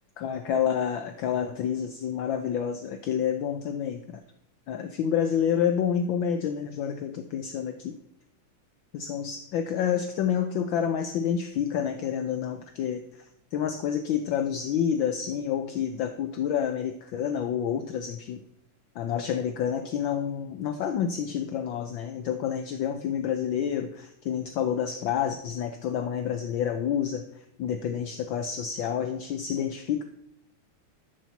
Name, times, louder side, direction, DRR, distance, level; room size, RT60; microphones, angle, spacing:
voice 1, 0.2-4.2 4.7-8.0 8.9-18.4 18.9-30.0, left 8 dB, 70° left, 7 dB, 1.3 m, -29 dB
12.0 x 4.4 x 7.0 m, 0.76 s
omnidirectional pair, 2.4 m